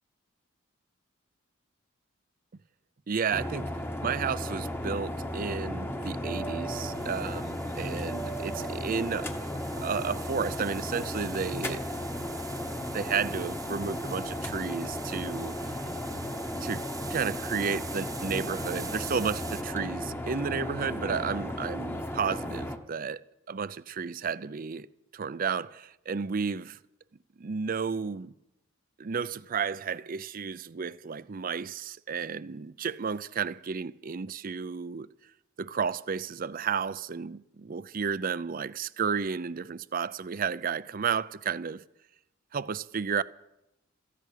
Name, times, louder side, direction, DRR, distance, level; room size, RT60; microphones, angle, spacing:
voice 1, 3.1-3.7 4.0-9.3 9.8-12.1 12.9-15.5 16.6-24.9 25.1-26.8 27.4-28.3 29.0-35.1 35.6-41.8 42.5-43.2, right 6 dB, 45° right, 0.5 m, -32 dB
sound 1, 3.3-22.8, left 1 dB, 10° left, 1.0 m, -35 dB
sound 2, 6.7-19.6, right 6 dB, 15° right, 0.8 m, -45 dB
14.5 x 11.0 x 8.4 m
head